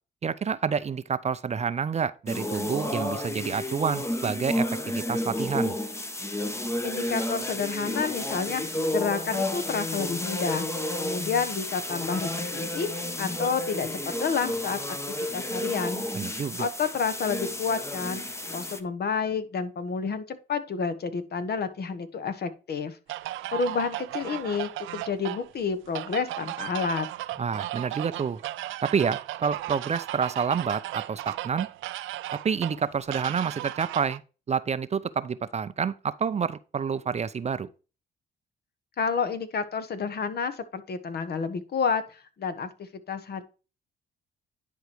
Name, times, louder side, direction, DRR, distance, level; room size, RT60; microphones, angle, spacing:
voice 1, 0.2-5.8 16.1-16.7 27.4-28.4 28.8-31.7 32.3-34.2 34.5-37.7, right 6 dB, 35° right, 0.5 m, -28 dB
sound 1, 2.3-18.8, left 1 dB, 15° left, 0.9 m, -31 dB
voice 2, 6.8-10.7 11.0-16.0 16.6-18.2 18.5-23.0 23.5-27.1 39.0-43.4, left 5 dB, 55° left, 1.2 m, -30 dB
sound 2, 23.1-34.2, right 15 dB, 85° right, 0.5 m, -36 dB
10.5 x 4.7 x 3.0 m
cardioid pair, 90°, 20 cm